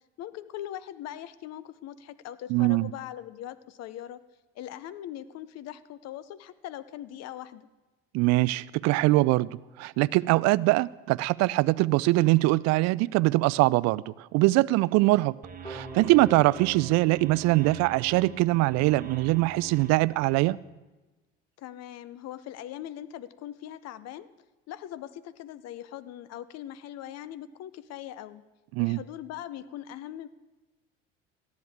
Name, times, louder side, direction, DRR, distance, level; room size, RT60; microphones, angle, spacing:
voice 1, 0.2-4.2 4.5-7.7 21.6-24.3 24.7-28.4 28.8-30.3, left 12 dB, 60° left, 0.8 m, -41 dB
voice 2, 2.5-2.9 8.1-9.5 9.8-15.4 15.6-20.6 28.7-29.0, right 20 dB, 60° right, 0.5 m, -23 dB
sound 1, 15.4-20.5, right 8 dB, 30° right, 1.5 m, -44 dB
sound 2, 15.6-18.6, right 1 dB, 20° left, 4.4 m, -45 dB
18.0 x 14.0 x 3.6 m
hypercardioid pair, 65°, 30 cm